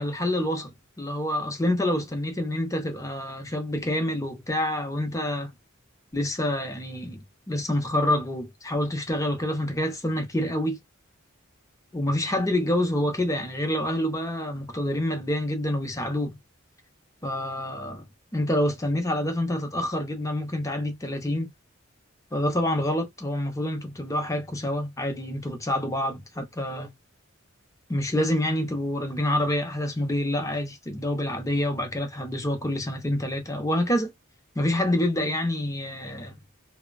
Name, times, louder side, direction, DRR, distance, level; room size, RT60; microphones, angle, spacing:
voice 1, 0.0-5.5 6.1-10.8 11.9-16.3 17.2-18.0 18.3-21.5 22.3-26.9 27.9-34.1 34.6-36.4, left 1 dB, 15° left, 0.7 m, -27 dB
2.7 x 2.1 x 2.5 m
head